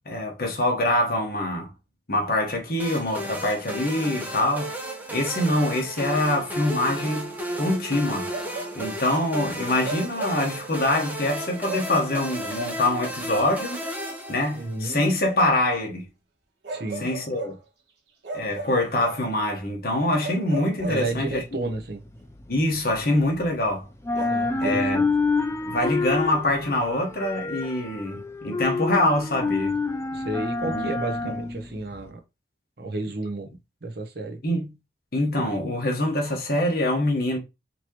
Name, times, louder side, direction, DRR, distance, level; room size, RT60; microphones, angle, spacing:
voice 1, 0.0-1.7 2.1-4.7 5.1-8.3 8.7-13.8 14.3-16.1 17.0-17.5 18.3-21.6 22.5-23.9 24.6-25.0 25.6-29.7 30.7-30.8 31.2-31.3 34.4-34.7 35.1-37.4, left 1 dB, 55° left, 1.3 m, -24 dB
sound 1, 2.8-15.0, right 1 dB, 10° right, 0.8 m, -34 dB
Bark, 8.3-9.0 9.8-10.5 11.6-12.0 13.7-13.9 16.6-17.6 18.2-19.3 20.2-21.5 24.1-24.9, right 2 dB, 90° right, 1.4 m, -36 dB
voice 2, 14.5-15.0 16.7-17.1 20.9-22.0 24.1-25.1 30.1-32.2 32.8-33.5 33.8-34.4, right 2 dB, 60° right, 0.8 m, -32 dB
sound 2, 20.8-23.7 23.9-32.1, left 3 dB, 15° left, 0.4 m, -28 dB
4.5 x 2.9 x 3.0 m
head